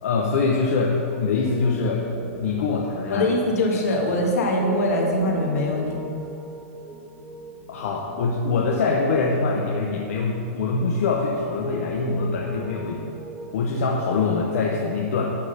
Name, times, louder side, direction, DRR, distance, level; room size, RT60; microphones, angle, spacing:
voice 1, 0.0-2.0 2.3-3.3 7.7-13.1 13.5-15.3, left 4 dB, 70° left, -2 dB, 1.0 m, -24 dB
Piano, 1.1-14.8, equal, ahead, 0.9 m, -39 dB
voice 2, 3.1-6.0, left 1 dB, 90° left, -1 dB, 1.9 m, -22 dB
11.5 x 3.8 x 6.7 m, 2.6 s
supercardioid pair, 160°, 8 cm